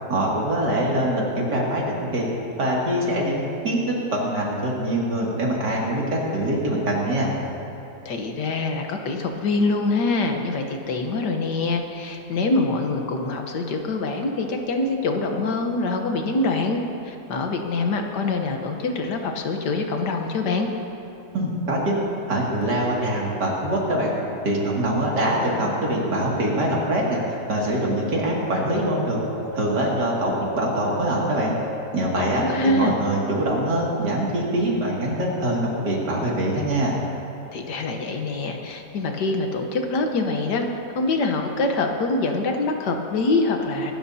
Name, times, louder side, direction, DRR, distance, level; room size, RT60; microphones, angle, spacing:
voice 1, 0.1-2.3 2.6-7.3 21.3-22.0 22.3-29.2 29.5-31.5 31.9-36.9, right 1 dB, 90° right, -4 dB, 3.0 m, -24 dB
voice 2, 8.1-16.8 17.1-20.7 32.2-33.0 37.5-40.7 41.0-43.9, left 3 dB, 90° left, 3 dB, 1.8 m, -24 dB
sound 1, 27.2-38.5, left 1 dB, 15° left, 1.2 m, -41 dB
24.5 x 12.5 x 2.8 m, 2.8 s
omnidirectional pair, 1.7 m